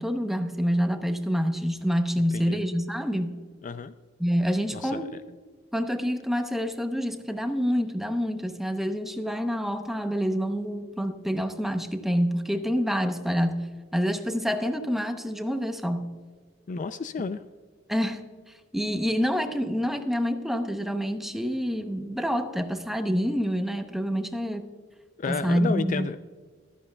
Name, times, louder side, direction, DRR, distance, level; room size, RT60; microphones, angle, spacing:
voice 1, 0.0-3.4 4.2-5.1 5.7-16.1 17.9-18.2 18.7-24.7 25.3-26.1, equal, ahead, 7 dB, 0.8 m, -27 dB
voice 2, 3.6-3.9 4.7-5.1 16.7-17.4 25.2-26.2, left 4 dB, 40° left, 12 dB, 0.4 m, -31 dB
15.0 x 13.0 x 2.3 m, 1.5 s
head